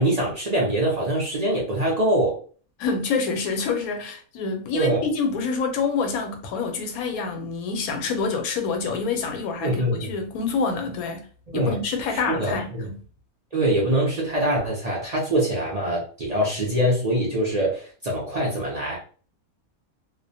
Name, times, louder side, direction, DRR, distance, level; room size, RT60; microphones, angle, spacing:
voice 1, 0.0-2.4 4.7-5.1 9.6-10.1 11.5-11.8 12.1-12.9 13.5-19.0, right 1 dB, 50° right, 0.4 m, -24 dB
voice 2, 2.8-11.3 11.5-13.0, left 4 dB, 90° left, 1.1 m, -27 dB
2.4 x 2.1 x 2.6 m
omnidirectional pair, 1.5 m